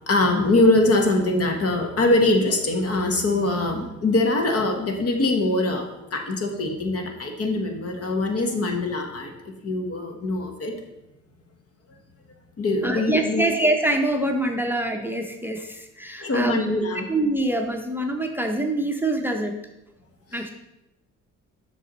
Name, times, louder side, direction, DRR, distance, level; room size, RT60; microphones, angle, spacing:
voice 1, 0.1-10.7 12.6-13.5 16.2-17.1 20.3-20.4, left 2 dB, 50° left, 4 dB, 1.3 m, -23 dB
voice 2, 12.8-16.6 17.1-19.5 20.3-20.5, right 1 dB, 5° right, 4 dB, 0.7 m, -25 dB
7.4 x 6.0 x 4.0 m, 0.93 s
cardioid pair, 90°, 30 cm